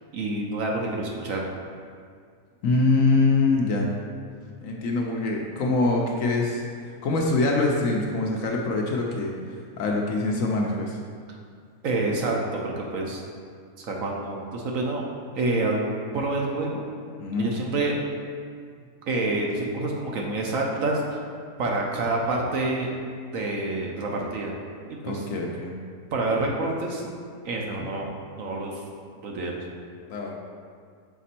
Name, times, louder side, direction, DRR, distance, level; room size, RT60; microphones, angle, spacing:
voice 1, 0.1-1.4 11.8-13.2 13.8-15.1 15.3-16.8 17.4-18.0 19.1-21.2 21.6-22.9 23.3-24.5 25.0-25.2 26.1-27.1 27.4-28.1 28.3-28.8 29.2-29.6, right 2 dB, 65° right, -1 dB, 1.0 m, -27 dB
voice 2, 2.6-3.9 4.6-6.6 7.0-11.0 17.2-17.5 25.0-25.7 27.8-27.9 30.1-30.3, left 3 dB, 65° left, -1 dB, 0.9 m, -24 dB
5.9 x 4.1 x 4.2 m, 2.1 s
omnidirectional pair, 1.7 m